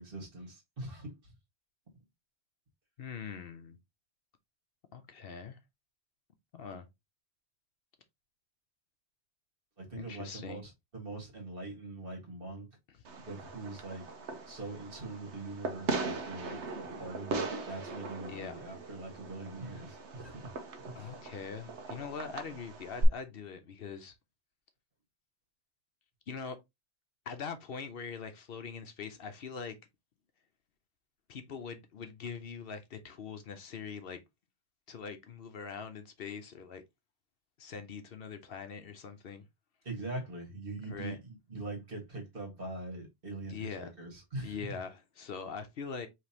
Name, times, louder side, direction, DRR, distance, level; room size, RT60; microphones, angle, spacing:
voice 1, 0.0-1.3 9.8-12.7 13.2-14.1 14.5-20.5 21.0-21.1 39.8-44.8, right 2 dB, 55° right, 1.9 m, -42 dB
voice 2, 3.0-3.8 4.9-5.6 6.5-6.9 9.9-10.6 18.3-18.6 20.9-24.1 26.3-26.6 27.3-29.7 31.3-34.2 34.9-36.8 37.6-39.4 40.9-41.2 43.5-43.9 44.4-46.1, left 6 dB, 65° left, 0.9 m, -42 dB
Fireworks, 13.0-23.0, right 3 dB, 85° right, 1.1 m, -39 dB
5.1 x 3.3 x 2.8 m
omnidirectional pair, 1.1 m